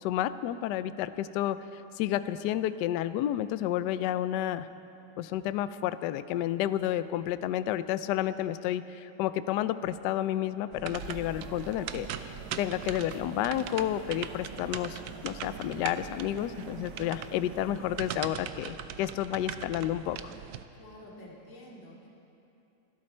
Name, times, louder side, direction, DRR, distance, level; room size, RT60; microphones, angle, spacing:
voice 1, 0.0-4.7 5.2-20.3, left 12 dB, 80° left, 13 dB, 0.9 m, -31 dB
sound 1, 10.7-20.6, right 9 dB, 85° right, 0.8 m, -41 dB
sound 2, 10.9-18.3, right 4 dB, 60° right, 1.7 m, -47 dB
voice 2, 20.7-22.1, left 1 dB, 35° left, -5 dB, 2.9 m, -49 dB
26.0 x 13.0 x 4.4 m, 2.8 s
omnidirectional pair, 2.4 m